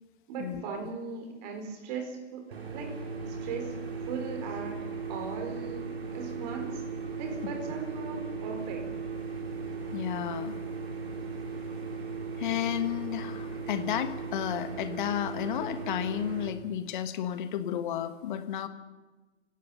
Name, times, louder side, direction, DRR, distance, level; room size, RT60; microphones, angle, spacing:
voice 1, 0.3-3.8 4.0-6.8 7.2-8.9, right 5 dB, 35° right, 4 dB, 4.5 m, -39 dB
sound 1, 2.5-16.5, right 5 dB, 60° right, 4.5 m, -37 dB
voice 2, 9.9-10.6 12.3-18.7, left 10 dB, 45° left, 10 dB, 1.6 m, -32 dB
29.5 x 17.0 x 5.7 m, 1.2 s
figure-of-eight pair, 115°, 36 cm